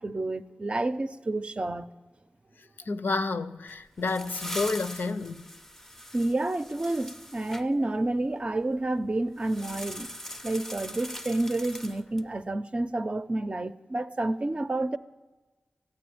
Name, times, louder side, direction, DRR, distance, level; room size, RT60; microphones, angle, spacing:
voice 1, 0.0-1.9 6.1-10.1 10.4-15.0, right 2 dB, 35° right, 0.5 m, -29 dB
voice 2, 2.9-5.5, left 3 dB, 75° left, 0.6 m, -30 dB
sound 1, 3.7-7.7 9.4-12.3, left 1 dB, 10° left, 0.5 m, -41 dB
13.5 x 9.6 x 9.3 m
wide cardioid pair, 80°, 3 cm